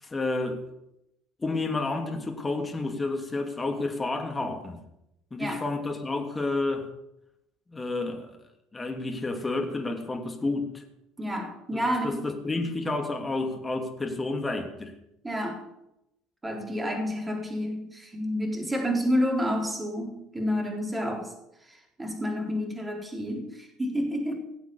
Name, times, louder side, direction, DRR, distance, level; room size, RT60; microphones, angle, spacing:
voice 1, 0.0-0.6 1.4-4.8 5.3-6.9 7.7-8.4 8.7-10.8 11.7-14.9, left 2 dB, 20° left, 2.9 m, -30 dB
voice 2, 11.2-12.2 15.2-15.6 16.4-21.3 21.7-24.6, equal, 15° right, 4.1 m, -29 dB
18.5 x 8.0 x 7.1 m
hypercardioid pair, 65°, 0 cm